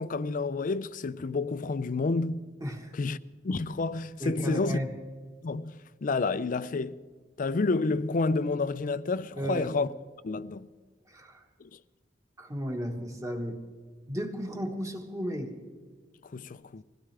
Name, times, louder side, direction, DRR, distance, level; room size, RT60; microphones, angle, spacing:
voice 1, 0.0-2.4 2.9-3.2 3.4-4.8 5.4-7.0 7.4-9.9 10.2-10.7 11.6-11.8 16.2-16.8, left 3 dB, 45° left, 0.4 m, -29 dB
voice 2, 2.6-2.9 4.2-4.9 9.3-9.7 11.1-11.4 12.4-13.6 14.1-15.5, equal, 20° right, 1.5 m, -34 dB
22.0 x 16.0 x 3.4 m
head